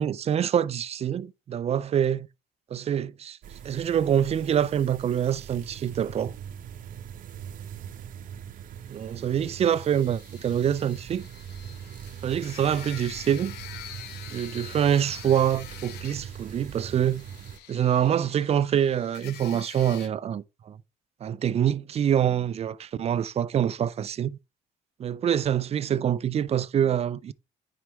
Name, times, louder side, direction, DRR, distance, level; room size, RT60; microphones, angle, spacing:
voice 1, 0.0-2.3 2.7-3.4 3.6-6.3 8.9-11.3 12.2-13.5 14.3-17.3 17.7-20.8 21.2-24.4 25.0-27.3, right 9 dB, 40° right, 0.5 m, -25 dB
sound 1, 3.4-17.6, right 9 dB, 55° right, 0.9 m, -42 dB
sound 2, 9.1-20.1, left 11 dB, 80° left, 0.8 m, -46 dB
9.5 x 4.8 x 3.1 m
cardioid pair, 110°, 17 cm